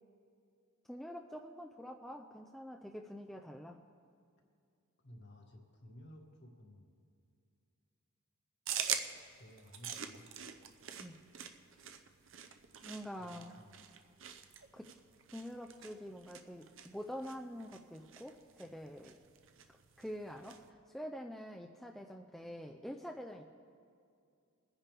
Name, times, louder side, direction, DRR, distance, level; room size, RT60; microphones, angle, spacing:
voice 1, 0.9-3.8 11.0-11.2 12.8-13.5 14.7-14.9 15.3-19.2 20.0-23.4, equal, ahead, 2 dB, 0.4 m, -46 dB
voice 2, 5.0-6.9 9.4-10.5 13.2-13.8, left 1 dB, 50° left, 0 dB, 1.9 m, -56 dB
sound 1, 8.7-20.7, right 8 dB, 60° right, 0.7 m, -45 dB
22.5 x 10.0 x 3.4 m, 2.3 s
head